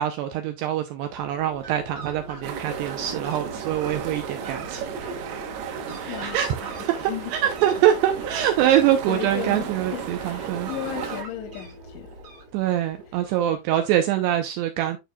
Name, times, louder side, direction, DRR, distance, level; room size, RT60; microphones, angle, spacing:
voice 1, 0.0-4.8 6.0-6.5 6.8-10.7 12.5-15.0, right 11 dB, 85° right, 2.5 m, -24 dB
Fowl, 0.9-13.9, right 2 dB, 55° right, 1.3 m, -42 dB
sound 1, 2.4-11.2, right 7 dB, 70° right, 2.9 m, -34 dB
voice 2, 6.1-6.4 6.6-6.7 7.1-7.3 9.1-12.2, left 11 dB, 85° left, 3.1 m, -35 dB
11.5 x 4.5 x 2.3 m
omnidirectional pair, 5.4 m